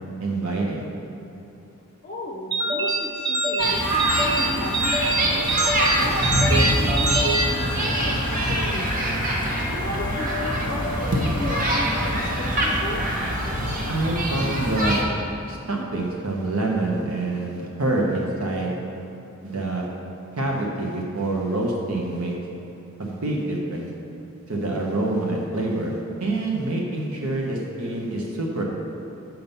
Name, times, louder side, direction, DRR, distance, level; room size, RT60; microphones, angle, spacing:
voice 1, 0.2-0.9 13.9-15.0 15.5-18.8 19.4-19.9 20.4-22.3 23.0-23.9 24.5-28.6, right 2 dB, 75° right, -2 dB, 1.1 m, -26 dB
voice 2, 2.0-5.5 5.9-9.2 9.7-13.0, left 1 dB, 40° left, -2 dB, 0.7 m, -35 dB
sound 1, 2.5-8.3, right 1 dB, 20° right, 0.6 m, -25 dB
sound 2, 3.6-15.0, right 1 dB, 40° right, 1.1 m, -24 dB
sound 3, 7.5-14.6, left 3 dB, 20° left, 1.1 m, -35 dB
7.6 x 5.4 x 5.6 m, 2.9 s
head